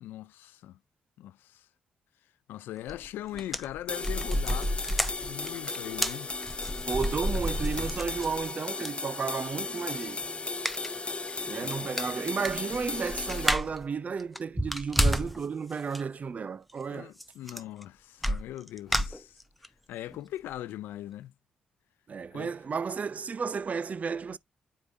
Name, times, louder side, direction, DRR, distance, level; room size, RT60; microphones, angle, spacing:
voice 1, 0.0-0.8 1.2-1.7 2.5-4.8 5.1-6.3 11.6-11.9 16.9-19.4 19.9-21.3 22.3-22.5, left 13 dB, 80° left, 0.4 m, -40 dB
sound 1, 2.9-3.1 3.3-8.5 8.8-8.9 10.6-10.9 11.3-11.4 11.7-11.8 12.0-13.8 14.2-15.4 15.7-16.0 17.2-17.3 17.5-17.8 18.2-19.7 20.1-20.2 20.5-20.6, equal, ahead, 0.7 m, -30 dB
sound 2, 3.9-13.5, left 3 dB, 35° left, 0.8 m, -36 dB
voice 2, 6.9-10.2 11.4-17.1 22.1-24.4, right 5 dB, 45° right, 0.4 m, -33 dB
8.3 x 4.9 x 2.5 m
supercardioid pair, 50°, 3 cm